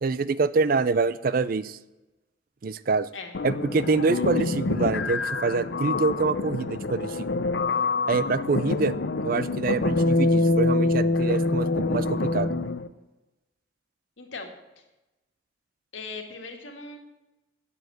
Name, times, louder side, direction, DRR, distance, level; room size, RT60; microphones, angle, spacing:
voice 1, 0.0-1.8 2.6-3.1 3.4-7.2 8.1-9.0 9.2-12.5, right 4 dB, 45° right, 16 dB, 0.4 m, -26 dB
sound 1, 3.3-12.9, left 3 dB, 60° left, 0.6 m, -25 dB
voice 2, 14.2-14.5 15.9-17.0, left 4 dB, 80° left, 4 dB, 1.9 m, -39 dB
8.7 x 7.8 x 7.8 m, 1.0 s
head